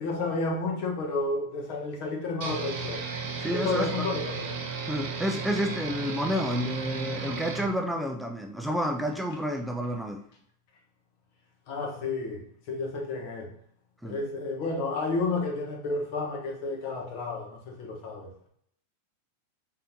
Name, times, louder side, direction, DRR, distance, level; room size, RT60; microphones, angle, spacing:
voice 1, 0.0-3.0 3.5-4.5 11.7-13.5 14.0-18.3, left 3 dB, 55° left, 1.3 m, -31 dB
sound 1, 2.4-7.7, right 5 dB, 60° right, 1.0 m, -34 dB
voice 2, 3.4-4.1 4.8-10.2 14.0-14.2, equal, ahead, 0.4 m, -30 dB
3.8 x 3.3 x 2.9 m
hypercardioid pair, 120°, 0 cm